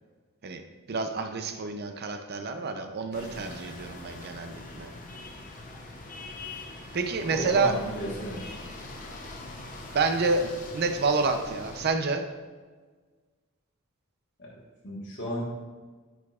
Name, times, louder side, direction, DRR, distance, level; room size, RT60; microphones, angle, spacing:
voice 1, 0.9-4.9 6.9-7.7 9.9-12.3, right 4 dB, 45° right, 7 dB, 0.5 m, -28 dB
sound 1, 3.1-11.9, left 2 dB, 35° left, 0.7 m, -42 dB
voice 2, 7.2-8.5 14.4-14.6 14.8-15.4, equal, 55° left, -6 dB, 1.2 m, -34 dB
8.9 x 4.8 x 2.4 m, 1.4 s
head